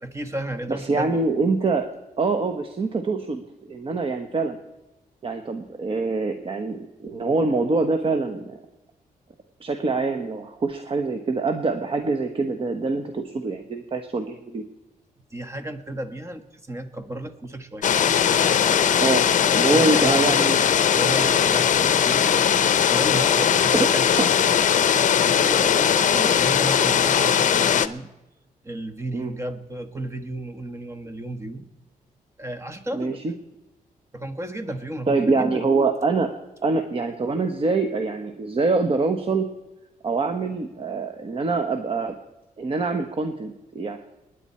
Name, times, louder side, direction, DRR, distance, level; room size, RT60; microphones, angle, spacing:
voice 1, 0.0-1.2 15.3-17.9 19.7-20.5 20.9-24.5 25.2-28.1 28.6-31.7 32.4-33.2 34.1-35.6, right 1 dB, 20° right, 8 dB, 1.4 m, -33 dB
voice 2, 0.7-1.9 2.2-4.6 5.2-8.6 9.6-14.6 19.0-19.2 19.5-20.6 21.2-21.3 23.7-23.9 24.2-24.3 29.1-29.3 32.9-33.3 35.1-36.3 36.6-39.5 40.0-42.2 42.6-44.0, right 3 dB, 40° right, 5 dB, 1.1 m, -24 dB
sound 1, 17.8-27.9, left 8 dB, 60° left, 0.7 m, -19 dB
29.0 x 10.0 x 4.4 m, 1.0 s
wide cardioid pair, 120°, 15 cm